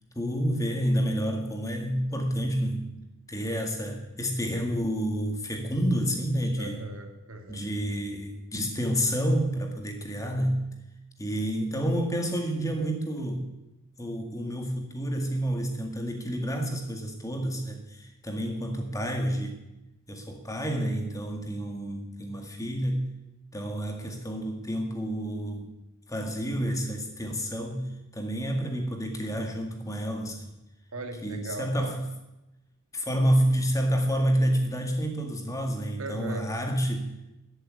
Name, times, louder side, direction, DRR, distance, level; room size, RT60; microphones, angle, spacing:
voice 1, 0.2-2.9 3.3-6.7 7.5-10.6 11.2-13.4 14.0-19.6 20.1-23.1 23.5-25.7 26.1-30.5 31.2-32.1 32.9-37.1, equal, 15° left, 3 dB, 2.0 m, -29 dB
voice 2, 6.6-7.7 30.9-31.9 36.0-36.5, right 2 dB, 75° right, 5 dB, 2.2 m, -37 dB
14.0 x 8.2 x 9.6 m, 0.93 s
head